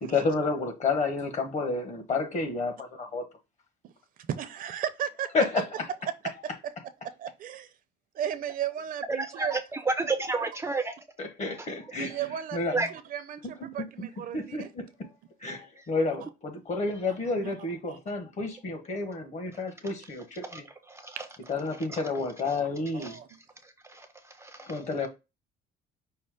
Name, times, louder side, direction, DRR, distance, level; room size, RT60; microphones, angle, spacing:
voice 1, 0.0-3.2 5.3-5.7 11.2-12.2 12.5-12.8 14.3-15.1 15.4-20.6 21.5-23.2 24.6-25.1, left 3 dB, 45° left, 1.3 m, -30 dB
voice 2, 4.3-5.6 6.2-6.5 7.2-7.7 8.1-9.6 12.0-14.7 17.4-17.5 17.9-18.0 21.2-21.3 23.0-23.3, right 9 dB, 55° right, 0.6 m, -35 dB
voice 3, 9.2-11.0 12.7-12.9 20.5-20.6 20.9-21.2 21.9-22.0 23.0-23.1 23.9-24.1 24.4-24.7, right 3 dB, 15° right, 0.4 m, -30 dB
5.5 x 2.0 x 4.8 m
cardioid pair, 110°, 17 cm